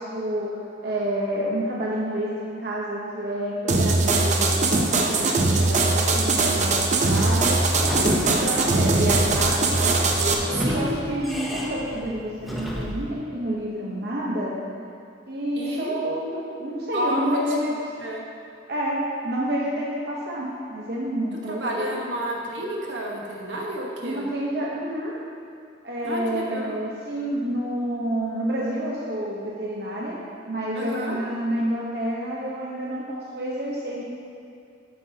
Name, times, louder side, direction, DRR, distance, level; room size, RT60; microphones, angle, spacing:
voice 1, 0.0-7.6 7.8-9.6 10.1-14.6 15.3-17.7 18.7-22.0 24.0-25.2 25.8-30.2 30.5-34.0, right 1 dB, 55° right, -5 dB, 0.9 m, -29 dB
sound 1, 3.7-10.3, right 3 dB, 40° right, 0.6 m, -21 dB
Sliding door / Squeak, 7.0-13.1, equal, ahead, 0.7 m, -33 dB
voice 2, 7.8-9.0 10.6-11.1 15.6-15.9 16.9-18.2 21.4-24.3 26.0-26.8 30.7-31.2, equal, 75° right, -2 dB, 1.3 m, -31 dB
9.9 x 8.0 x 2.8 m, 2.4 s
head